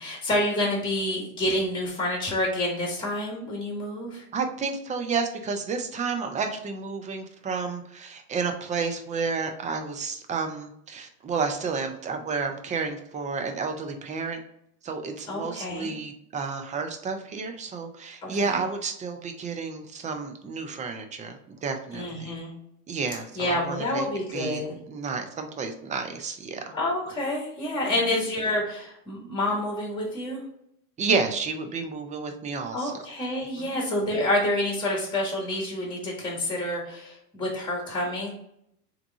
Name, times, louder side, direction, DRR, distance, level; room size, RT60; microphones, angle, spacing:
voice 1, 0.0-4.2 15.3-15.9 18.4-18.6 21.9-22.5 23.3-24.7 26.7-30.4 32.7-38.3, left 1 dB, 10° left, -2 dB, 1.5 m, -28 dB
voice 2, 4.3-14.4 14.8-22.3 22.9-24.1 24.3-24.6 24.9-26.8 31.0-32.9, right 4 dB, 15° right, 6 dB, 0.5 m, -31 dB
3.5 x 3.1 x 3.5 m, 0.75 s
hypercardioid pair, 100°, 45 cm